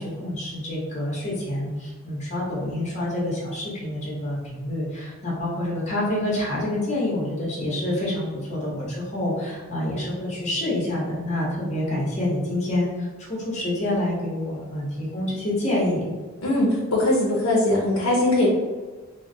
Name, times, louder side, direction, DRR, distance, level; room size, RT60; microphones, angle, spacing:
voice 1, 0.0-16.1, left 1 dB, 30° left, -4 dB, 0.8 m, -27 dB
voice 2, 16.4-18.6, left 1 dB, 75° left, -3 dB, 0.5 m, -21 dB
3.6 x 2.1 x 2.6 m, 1.3 s
head